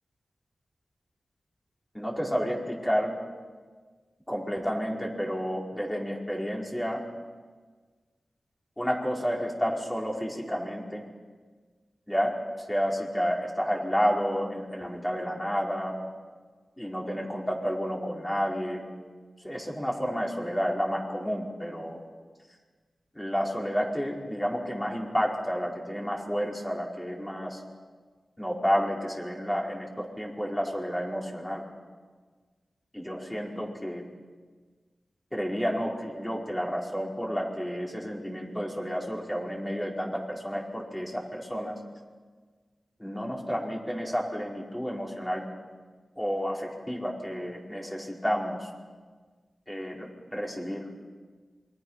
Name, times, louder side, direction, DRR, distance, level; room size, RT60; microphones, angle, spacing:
voice 1, 1.9-3.1 4.3-7.0 8.8-11.0 12.1-12.4 12.7-16.0 16.8-18.8 19.4-22.0 23.1-27.6 28.4-31.6 32.9-34.0 35.3-41.8 43.0-45.5 46.2-48.7 49.7-50.9, equal, 10° left, -2 dB, 4.9 m, -30 dB
28.0 x 24.0 x 5.8 m, 1.5 s
wide cardioid pair, 85°, 0 cm